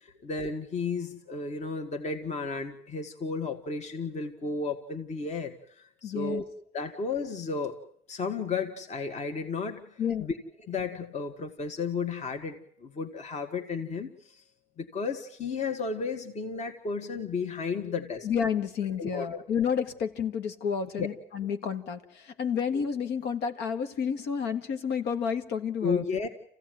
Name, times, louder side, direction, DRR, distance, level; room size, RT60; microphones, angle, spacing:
voice 1, 0.0-6.4 6.7-7.8 8.1-9.9 10.2-10.3 10.6-14.4 14.8-18.3 19.0-19.4 21.0-21.1 25.8-26.3, left 4 dB, 45° left, 5 dB, 1.9 m, -33 dB
voice 2, 6.0-6.4 10.0-10.3 18.2-26.0, left 7 dB, 85° left, 8 dB, 1.8 m, -30 dB
27.0 x 16.0 x 9.3 m, 0.68 s
cardioid pair, 110°, 17 cm